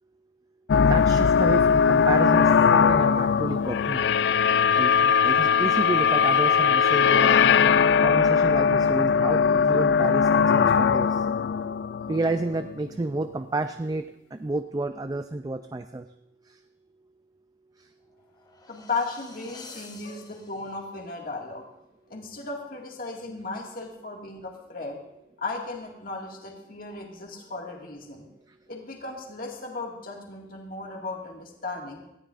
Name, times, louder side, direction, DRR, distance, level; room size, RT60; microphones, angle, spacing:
sound 1, 0.7-12.8, left 6 dB, 70° left, 0.3 m, -20 dB
voice 1, 0.9-4.0 4.6-11.3 12.1-16.1 16.5-16.6 17.8-17.9 19.7-19.9, right 2 dB, 20° right, 9 dB, 0.4 m, -31 dB
sound 2, 18.0-21.0, left 3 dB, 20° left, 1.0 m, -49 dB
voice 2, 18.7-21.6 22.1-25.0 25.4-28.3 28.7-32.0, left 3 dB, 50° left, 0 dB, 2.0 m, -35 dB
18.5 x 13.5 x 2.5 m, 0.85 s
head